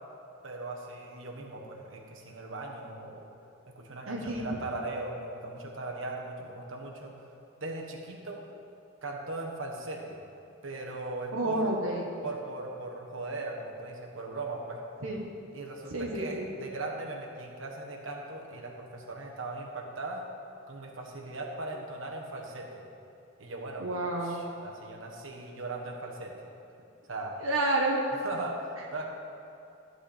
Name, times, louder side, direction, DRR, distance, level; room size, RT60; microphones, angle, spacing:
voice 1, 0.4-3.3 3.7-7.1 7.6-8.4 9.0-10.2 10.6-11.7 12.2-14.8 15.5-20.2 20.7-22.8 23.4-23.9 24.2-26.3 27.1-27.4 28.2-29.1, right 2 dB, 70° right, 0 dB, 1.5 m, -39 dB
voice 2, 4.1-4.4 11.3-12.1 15.0-15.2 15.9-16.5 23.8-24.4 27.4-28.0, right 2 dB, 90° right, -2 dB, 1.3 m, -29 dB
14.5 x 4.9 x 8.5 m, 2.8 s
head